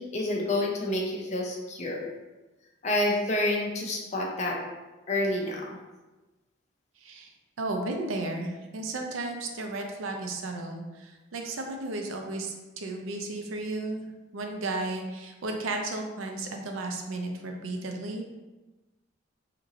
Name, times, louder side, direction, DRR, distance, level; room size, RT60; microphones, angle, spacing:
voice 1, 0.0-2.1 2.8-4.6 5.1-5.8, left 1 dB, 35° left, -2 dB, 0.5 m, -28 dB
voice 2, 7.0-7.3 7.6-14.0 14.3-18.2, right 2 dB, 90° right, 3 dB, 0.5 m, -34 dB
2.9 x 2.5 x 3.8 m, 1.1 s
head